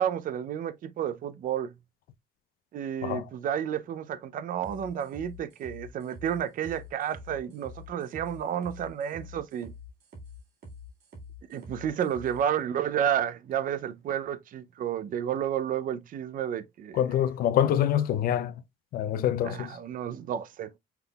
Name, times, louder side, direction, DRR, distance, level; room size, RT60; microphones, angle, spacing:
voice 1, 0.0-1.7 2.7-9.7 11.5-17.0 19.4-20.8, right 9 dB, 55° right, 0.6 m, -31 dB
sound 1, 4.6-12.4, left 2 dB, 70° right, 2.0 m, -46 dB
voice 2, 16.9-18.5 18.9-19.7, left 10 dB, 60° left, 0.5 m, -25 dB
5.8 x 3.6 x 2.3 m
cardioid pair, 110°, 17 cm